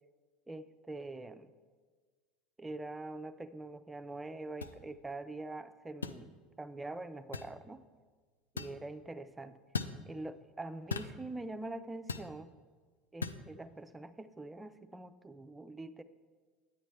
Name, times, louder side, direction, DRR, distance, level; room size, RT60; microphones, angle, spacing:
voice 1, 0.5-1.5 2.6-6.3 6.6-7.8 8.5-9.6 10.1-12.5 13.1-16.0, right 2 dB, 15° right, 11 dB, 0.4 m, -44 dB
sound 1, 4.6-4.8 6.0-6.2 7.3-7.5 8.6-8.8 9.7-10.0 10.9-11.2 12.1-12.3 13.2-13.4, left 5 dB, 85° left, 0.3 m, -37 dB
9.1 x 8.9 x 3.2 m, 1.5 s
hypercardioid pair, 75°, 0 cm